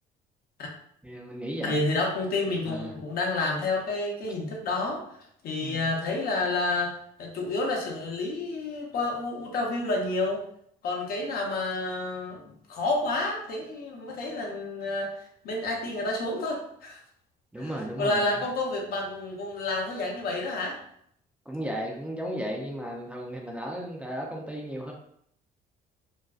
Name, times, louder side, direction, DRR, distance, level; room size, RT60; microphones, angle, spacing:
voice 1, 1.0-1.8 2.7-3.0 5.6-5.9 17.5-18.3 21.5-24.9, equal, 10° right, -1 dB, 0.4 m, -35 dB
voice 2, 1.6-5.1 5.4-6.9 7.2-10.4 10.8-17.0 17.6-17.7 18.0-20.8, left 2 dB, 65° left, 0 dB, 0.7 m, -29 dB
2.5 x 2.2 x 2.3 m, 0.69 s
cardioid pair, 110°, 17 cm